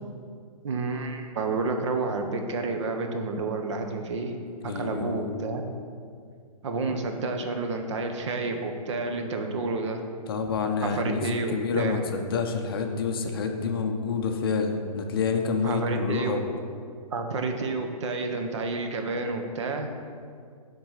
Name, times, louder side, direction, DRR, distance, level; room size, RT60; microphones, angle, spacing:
voice 1, 0.6-4.3 4.6-5.6 6.6-10.0 10.8-12.0 15.6-16.4 17.1-19.9, right 3 dB, 50° right, 5 dB, 0.8 m, -30 dB
voice 2, 4.6-5.3 10.3-11.2 11.5-16.4, left 5 dB, 40° left, 4 dB, 0.5 m, -28 dB
7.4 x 3.9 x 5.6 m, 2.2 s
hypercardioid pair, 170°, 20 cm